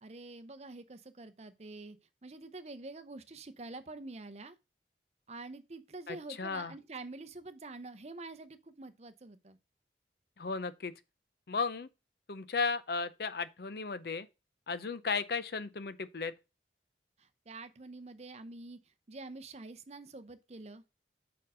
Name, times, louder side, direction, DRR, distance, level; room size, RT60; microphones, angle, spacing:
voice 1, 0.0-4.6 5.3-9.6 17.2-18.8 19.1-20.8, right 3 dB, 35° right, 0.7 m, -47 dB
voice 2, 6.1-6.7 10.4-10.9 11.5-11.9 12.3-14.3 14.7-16.3, left 4 dB, 60° left, 0.6 m, -35 dB
5.5 x 4.5 x 6.3 m
head